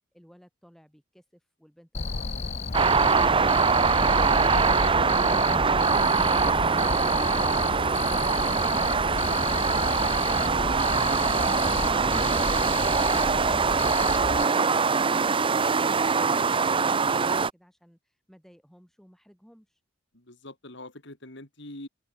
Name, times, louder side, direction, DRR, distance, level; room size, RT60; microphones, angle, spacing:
voice 1, 0.1-2.4 15.5-19.8, equal, ahead, 6.7 m, -56 dB
Cricket, 1.9-14.4, left 4 dB, 35° left, 0.6 m, -32 dB
sound 1, 2.7-17.5, right 5 dB, 25° right, 0.6 m, -23 dB
voice 2, 14.2-14.8 20.1-21.9, left 1 dB, 65° left, 5.0 m, -44 dB
head